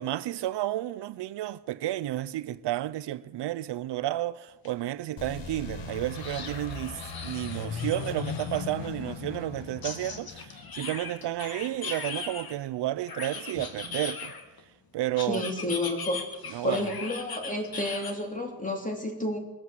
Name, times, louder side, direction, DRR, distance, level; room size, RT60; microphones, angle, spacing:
voice 1, 0.0-14.3 14.9-15.4 16.5-16.8, right 14 dB, 75° right, 0.6 m, -32 dB
sound 1, 4.6-4.7 5.1-5.2 6.1-8.7 9.8-12.5 13.1-14.6 15.2-18.1, left 5 dB, 55° left, 2.0 m, -39 dB
sound 2, 5.2-11.7, left 5 dB, 85° left, 1.7 m, -38 dB
voice 2, 15.3-16.2 16.6-19.4, left 1 dB, 20° left, 3.2 m, -30 dB
22.5 x 8.3 x 7.5 m
cardioid pair, 95°, 42 cm